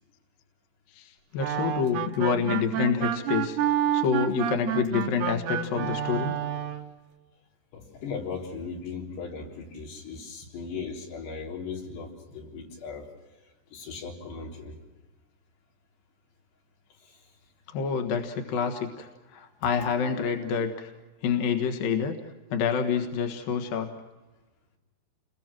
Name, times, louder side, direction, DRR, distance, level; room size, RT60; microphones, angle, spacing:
voice 1, 0.9-3.6 3.9-6.3 17.7-20.9 21.2-22.1 22.5-23.9, left 6 dB, 65° left, 5 dB, 3.1 m, -27 dB
sound 1, 1.4-6.9, right 10 dB, 80° right, 3.3 m, -29 dB
voice 2, 7.7-13.1 13.7-14.8 17.0-17.2, left 5 dB, 90° left, -1 dB, 5.8 m, -38 dB
29.0 x 22.0 x 6.0 m, 1.2 s
omnidirectional pair, 4.7 m